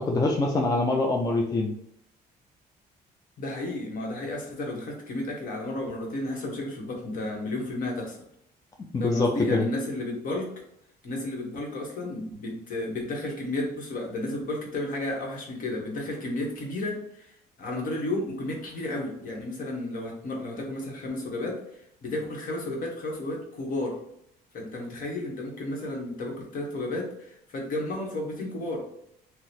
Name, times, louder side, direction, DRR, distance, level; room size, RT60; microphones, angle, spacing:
voice 1, 0.0-1.7 8.9-9.7, left 2 dB, 20° left, 1 dB, 0.4 m, -24 dB
voice 2, 3.4-8.2 9.0-10.5 11.0-24.0 24.5-28.8, left 2 dB, 55° left, 0 dB, 1.1 m, -32 dB
2.9 x 2.1 x 4.1 m, 0.75 s
cardioid pair, 110°, 17 cm